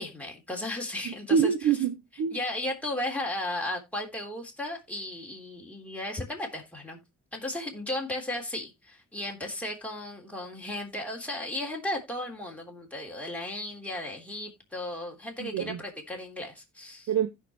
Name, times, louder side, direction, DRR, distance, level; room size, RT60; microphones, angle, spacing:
voice 1, 0.0-1.5 2.3-7.0 7.3-17.1, left 1 dB, 5° left, 3.5 m, -35 dB
voice 2, 1.0-2.4 15.4-15.8 17.1-17.3, right 7 dB, 65° right, 0.9 m, -26 dB
15.5 x 5.7 x 3.1 m
cardioid pair, 90°, 30 cm